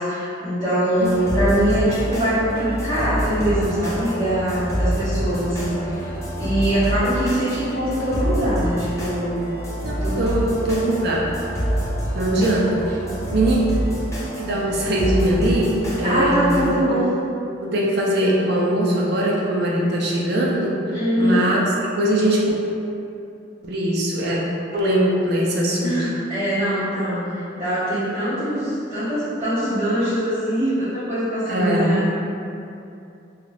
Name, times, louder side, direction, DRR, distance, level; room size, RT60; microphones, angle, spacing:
voice 1, 0.0-6.1 6.4-9.4 10.0-10.5 12.3-12.4 16.0-17.1 20.9-21.4 25.8-32.0, equal, 35° right, -18 dB, 1.2 m, -23 dB
sound 1, 1.0-16.7, equal, 15° left, 0.5 m, -27 dB
voice 2, 9.8-11.2 12.1-13.0 13.3-13.6 14.4-16.6 16.9-17.0 17.6-21.6 22.0-22.4 23.6-24.4 24.7-26.1 31.5-31.9, right 1 dB, 55° right, -3 dB, 0.5 m, -21 dB
2.9 x 2.4 x 3.2 m, 2.6 s
head